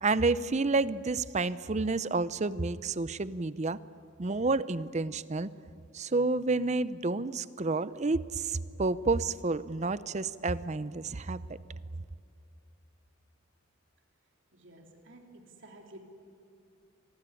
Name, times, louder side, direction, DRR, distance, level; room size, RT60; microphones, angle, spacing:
voice 1, 0.0-3.8 4.2-5.5 5.9-11.4, right 3 dB, 35° right, 16 dB, 0.6 m, -30 dB
voice 2, 14.5-16.0, right 1 dB, 65° right, 2 dB, 3.5 m, -52 dB
25.5 x 19.5 x 9.8 m, 2.5 s
head